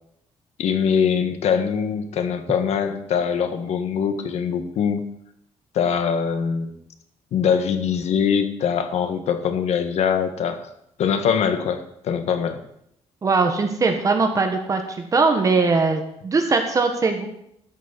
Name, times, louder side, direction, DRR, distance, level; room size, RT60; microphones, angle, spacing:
voice 1, 0.6-5.0 5.7-6.7 7.3-10.7 11.0-12.6, left 7 dB, 65° left, 8 dB, 1.6 m, -23 dB
voice 2, 13.2-14.8 15.1-17.3, right 4 dB, 30° right, 5 dB, 1.5 m, -20 dB
13.0 x 6.3 x 8.1 m, 0.75 s
cardioid pair, 140°, 12 cm